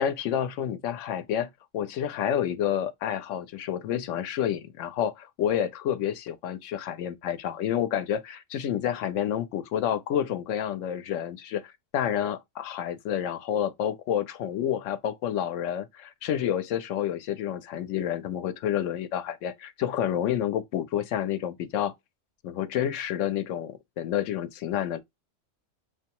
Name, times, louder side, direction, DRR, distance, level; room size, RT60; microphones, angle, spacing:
voice 1, 0.0-21.9 22.4-25.0, left 10 dB, 75° left, 0.9 m, -29 dB
6.1 x 2.2 x 2.9 m
omnidirectional pair, 1.3 m